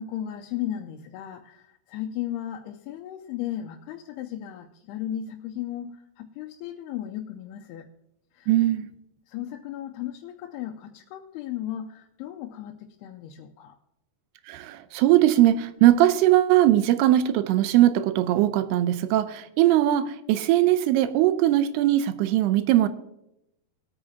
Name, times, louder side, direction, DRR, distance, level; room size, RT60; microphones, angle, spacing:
voice 1, 0.0-7.9 8.3-8.5 9.3-13.8, left 11 dB, 85° left, 2.7 m, -35 dB
voice 2, 8.5-8.9 14.5-22.9, right 13 dB, 85° right, 2.7 m, -20 dB
20.5 x 8.8 x 2.8 m
omnidirectional pair, 4.6 m